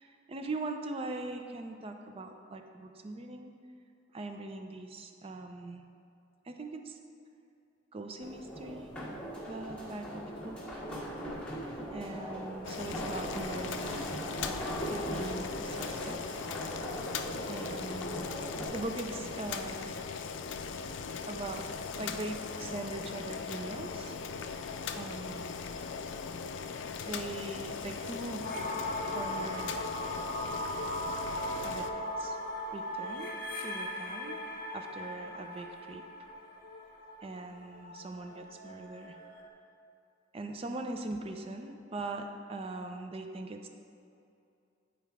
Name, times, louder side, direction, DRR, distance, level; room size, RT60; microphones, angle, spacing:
voice 1, 0.0-3.5 4.1-5.8 6.4-7.0 7.9-8.9 9.5-10.8 11.9-14.1 14.4-16.4 17.4-18.4 18.7-20.0 21.3-21.7 22.0-24.2 24.9-25.5 27.1-28.5 29.0-29.8 31.6-32.4 32.7-33.3 33.6-34.4 34.7-36.0 37.2-39.2 40.3-43.7, right 2 dB, 30° right, 5 dB, 0.4 m, -41 dB
sound 1, 8.2-18.7, equal, 5° left, 1.6 m, -39 dB
Boiling, 12.6-31.9, left 5 dB, 75° left, 0.4 m, -39 dB
sound 2, 28.4-39.5, left 1 dB, 50° left, 0.8 m, -39 dB
9.2 x 4.7 x 3.5 m, 2.5 s
head